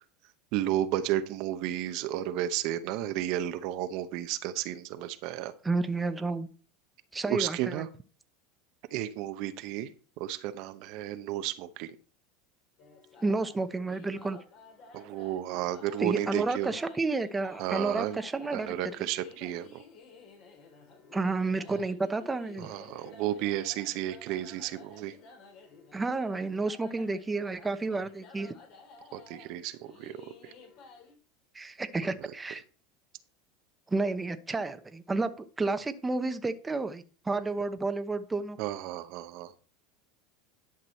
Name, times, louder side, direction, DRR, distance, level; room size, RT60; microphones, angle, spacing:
voice 1, 0.5-5.5 7.3-7.9 8.9-9.9 10.2-11.9 14.9-16.7 17.6-18.2 18.5-19.8 22.6-25.1 29.1-30.2 30.4-30.5 38.6-39.5, right 12 dB, 60° right, 11 dB, 0.8 m, -32 dB
voice 2, 5.6-6.5 7.1-7.9 13.2-14.4 16.0-18.9 21.1-22.7 25.9-28.5 31.5-32.6 33.9-38.6, right 3 dB, 15° right, 10 dB, 0.9 m, -31 dB
sound 1, 12.8-31.1, left 3 dB, 55° left, 3.4 m, -53 dB
11.0 x 6.1 x 4.3 m, 0.38 s
supercardioid pair, 105°, 0 cm